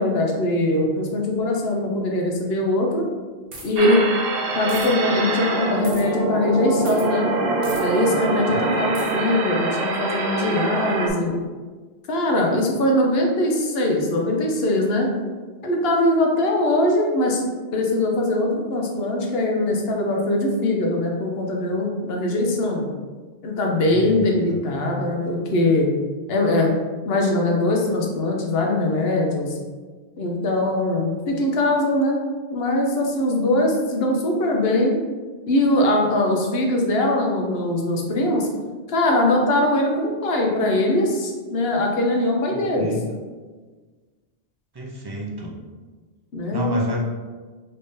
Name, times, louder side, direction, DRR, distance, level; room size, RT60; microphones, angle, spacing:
voice 1, 0.0-3.0 3.6-4.0 4.5-7.3 7.8-11.3 12.1-15.1 15.6-17.4 17.7-22.9 23.4-25.9 26.3-26.7 27.0-29.6 30.2-32.2 32.5-35.0 35.5-38.5 38.9-42.9 46.3-46.7, left 1 dB, 70° left, 0 dB, 0.9 m, -21 dB
sound 1, 3.5-3.8 4.7-4.9 5.8-6.0 6.8-7.1 7.6-7.8 8.9-9.1, right 2 dB, 85° right, 1.1 m, -37 dB
sound 2, 3.8-11.1, right 3 dB, 65° right, 0.7 m, -25 dB
voice 2, 23.9-24.6 42.5-43.0 44.7-45.5 46.5-47.0, equal, 30° right, -2 dB, 0.4 m, -30 dB
3.6 x 3.2 x 2.6 m, 1.4 s
omnidirectional pair, 1.1 m